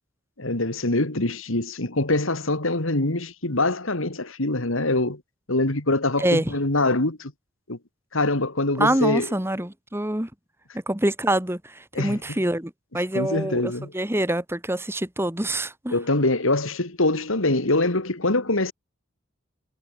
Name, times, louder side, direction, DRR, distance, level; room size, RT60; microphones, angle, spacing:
voice 1, 0.4-5.2 5.5-7.3 7.7-7.8 8.1-9.3 11.9-12.2 13.1-13.9 15.9-18.7, left 2 dB, 75° left, 2.7 m, -24 dB
voice 2, 6.2-6.5 8.8-10.3 10.9-16.0, right 1 dB, 10° right, 1.6 m, -25 dB
head